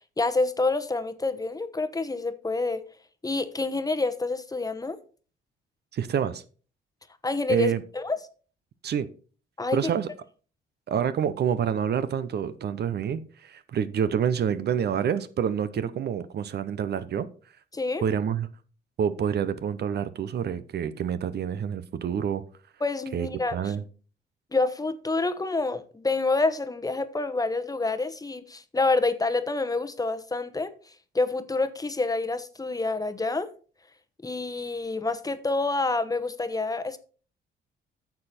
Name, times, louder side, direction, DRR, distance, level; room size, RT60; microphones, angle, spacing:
voice 1, 0.2-2.8 3.2-5.0 7.2-8.2 9.6-9.8 17.7-18.0 22.8-23.7 24.5-30.7 31.1-33.5 34.2-37.0, left 3 dB, 20° left, 1.0 m, -27 dB
voice 2, 5.9-6.4 7.5-7.8 8.8-9.1 9.7-10.1 10.9-17.3 18.0-18.5 19.0-22.4 23.1-23.8, right 8 dB, 55° right, 0.8 m, -27 dB
9.4 x 6.9 x 4.3 m
cardioid pair, 90°, 20 cm